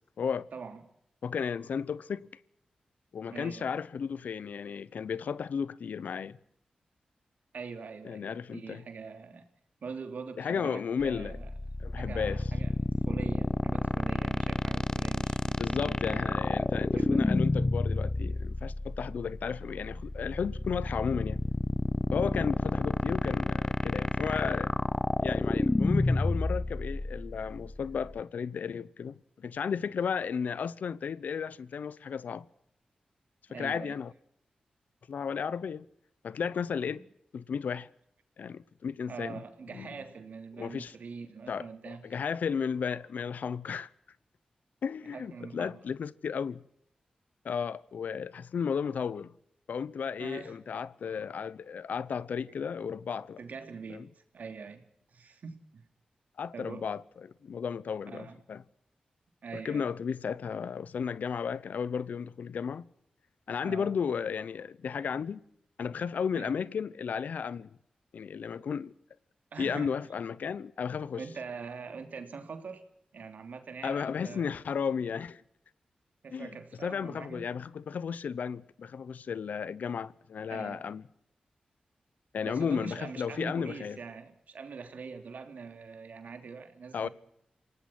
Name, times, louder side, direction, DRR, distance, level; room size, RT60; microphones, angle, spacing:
voice 1, 0.2-0.5 1.2-2.3 3.1-6.4 8.0-8.8 10.4-11.4 11.8-12.4 15.6-21.4 22.1-24.7 25.2-32.4 33.5-34.1 35.1-35.8 36.2-37.0 37.3-37.9 38.4-39.4 39.7-39.9 40.6-40.9 41.5-43.9 44.8-46.6 47.4-49.3 49.7-53.4 53.9-54.0 56.4-58.6 59.5-62.9 63.5-65.4 65.8-67.7 68.1-68.9 69.6-71.2 73.8-75.4 76.3-76.5 76.8-81.0 82.3-84.0 86.9-87.1, left 6 dB, 80° left, 0.8 m, -34 dB
voice 2, 3.3-3.7 7.5-9.5 9.8-11.5 12.0-16.4 16.9-17.3 33.5-34.0 36.9-37.0 39.1-42.0 45.0-45.8 50.2-50.6 53.4-55.8 56.5-56.9 58.1-58.4 59.4-59.9 63.6-63.9 66.3-66.6 69.5-70.0 71.2-72.8 73.1-74.5 76.2-77.4 80.5-80.9 82.4-87.1, right 5 dB, 75° right, 3.0 m, -43 dB
sound 1, 11.0-28.2, left 2 dB, 25° left, 0.9 m, -30 dB
27.5 x 18.5 x 6.1 m
supercardioid pair, 40°, 3 cm